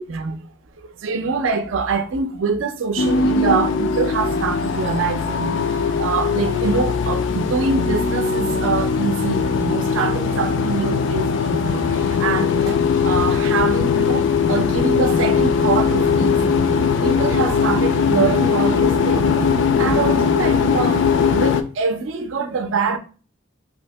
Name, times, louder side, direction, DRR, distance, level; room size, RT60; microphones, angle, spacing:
voice 1, 0.1-0.4 1.0-11.8 12.1-16.7 17.0-19.4 19.8-23.0, right 5 dB, 75° right, 0.5 m, -24 dB
sound 1, 3.0-21.6, left 5 dB, 65° left, 0.3 m, -20 dB
2.7 x 2.7 x 3.3 m
head